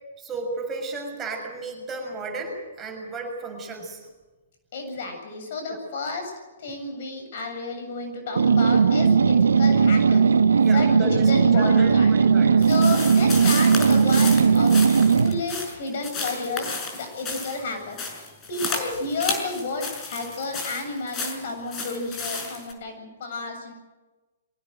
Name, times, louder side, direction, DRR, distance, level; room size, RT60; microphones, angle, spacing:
voice 1, 0.2-4.0 5.7-5.8 10.6-11.3 11.6-12.6, right 3 dB, 20° right, 1 dB, 6.8 m, -34 dB
voice 2, 4.7-6.3 6.6-10.2 10.6-12.1 12.6-14.8 15.1-18.0 18.5-23.7, left 3 dB, 55° left, 5 dB, 7.6 m, -31 dB
sound 1, 8.4-15.4, right 5 dB, 75° right, 1.1 m, -18 dB
sound 2, 12.6-22.7, left 4 dB, 25° left, 5.9 m, -33 dB
23.5 x 18.0 x 8.0 m, 1.2 s
figure-of-eight pair, 120°, 0 cm